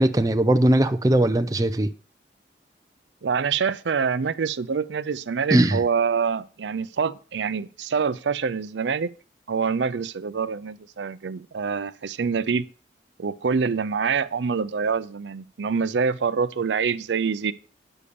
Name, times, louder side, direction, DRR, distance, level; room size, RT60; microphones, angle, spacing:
voice 1, 0.0-1.9 5.5-5.8, right 1 dB, 20° right, 0.5 m, -19 dB
voice 2, 3.2-9.1 9.5-12.7 13.2-17.5, right 5 dB, 85° right, 0.5 m, -25 dB
9.9 x 6.9 x 5.1 m
head